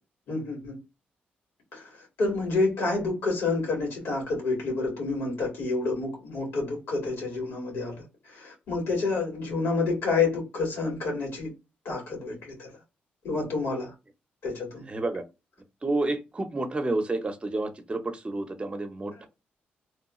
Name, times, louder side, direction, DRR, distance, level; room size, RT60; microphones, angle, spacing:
voice 1, 0.3-0.8 1.7-1.9 2.2-11.5 11.9-12.7 13.2-13.9 14.4-14.9, left 3 dB, 80° left, 1.9 m, -29 dB
voice 2, 14.9-15.2 15.8-19.3, right 2 dB, 30° right, 0.7 m, -30 dB
3.0 x 2.2 x 3.0 m
cardioid pair, 65°, 4 cm